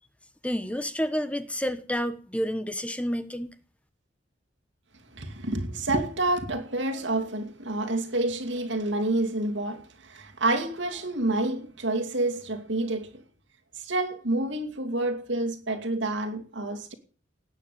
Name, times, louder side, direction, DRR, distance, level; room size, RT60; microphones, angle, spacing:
voice 1, 0.4-3.5, equal, 5° left, 1.0 m, -29 dB
voice 2, 5.1-13.2 13.8-16.9, right 2 dB, 75° right, 2.6 m, -28 dB
18.0 x 9.7 x 6.9 m
head